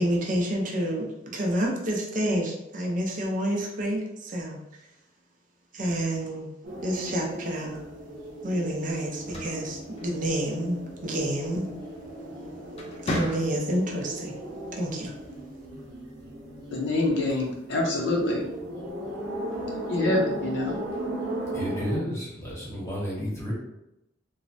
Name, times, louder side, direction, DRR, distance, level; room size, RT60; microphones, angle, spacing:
voice 1, 0.0-4.6 5.7-6.5 6.8-7.8 8.4-11.7 13.0-14.4 14.8-15.1, right 1 dB, 45° right, 0 dB, 0.5 m, -29 dB
sound 1, 6.6-22.0, right 1 dB, 85° right, 0.7 m, -37 dB
sound 2, 9.1-10.6 12.0-12.3 12.7-13.9, left 1 dB, 35° left, 0.4 m, -34 dB
voice 2, 16.7-18.5 19.9-20.8, left 2 dB, 75° left, -1 dB, 0.6 m, -26 dB
voice 3, 21.5-23.5, equal, 15° left, -6 dB, 0.9 m, -32 dB
3.1 x 2.0 x 2.6 m, 0.88 s
head